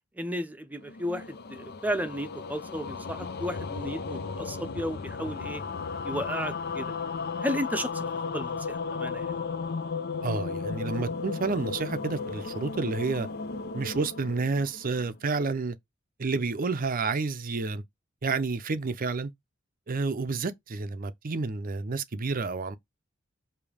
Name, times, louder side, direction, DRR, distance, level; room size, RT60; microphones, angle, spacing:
voice 1, 0.1-5.6 6.0-6.9 7.4-9.4, equal, 10° right, 0.7 m, -34 dB
sound 1, 0.8-15.2, left 4 dB, 55° left, 0.6 m, -35 dB
voice 2, 10.2-13.3 13.7-15.8 16.2-17.8 18.2-19.3 19.9-22.8, right 4 dB, 45° right, 0.6 m, -30 dB
7.0 x 2.8 x 4.9 m
head